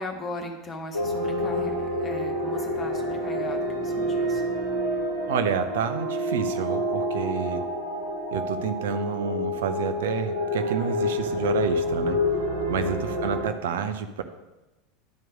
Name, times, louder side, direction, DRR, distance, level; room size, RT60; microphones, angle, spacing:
voice 1, 0.0-4.4 12.8-13.0, left 2 dB, 30° left, 4 dB, 1.4 m, -38 dB
sound 1, 0.9-13.5, left 1 dB, 80° right, 2.2 m, -28 dB
voice 2, 5.3-7.6 8.3-12.2 12.7-14.2, right 7 dB, 65° right, 9 dB, 0.6 m, -29 dB
10.5 x 4.6 x 6.2 m, 1.1 s
figure-of-eight pair, 75°, 0 cm